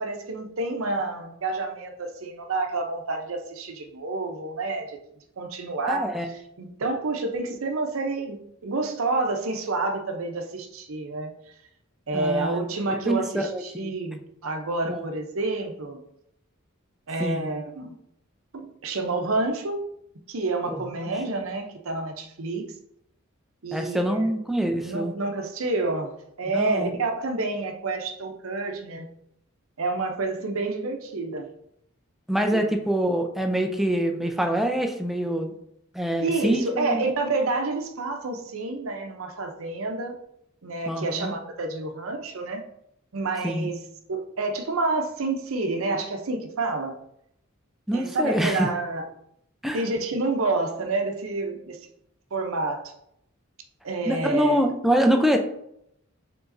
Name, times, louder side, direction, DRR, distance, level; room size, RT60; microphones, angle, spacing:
voice 1, 0.0-5.0 5.4-6.1 6.6-11.3 12.1-16.0 17.1-18.0 18.5-19.8 20.3-22.7 23.6-24.3 24.8-26.1 26.4-29.1 29.8-31.5 32.5-32.6 36.2-40.2 40.6-42.6 43.1-43.8 44.1-47.0 47.9-49.1 49.7-51.8 52.3-52.9 53.8-54.6, right 3 dB, 85° right, 4 dB, 0.7 m, -29 dB
voice 2, 5.9-6.3 12.1-12.7 13.1-13.9 14.9-15.1 17.2-17.5 20.7-20.8 21.3-21.4 23.7-25.1 26.5-27.0 32.3-35.5 35.9-37.0 40.9-41.3 43.4-43.7 47.9-48.7 49.6-49.8 54.1-55.4, equal, ahead, 3 dB, 0.4 m, -25 dB
4.9 x 3.7 x 2.6 m, 0.75 s
head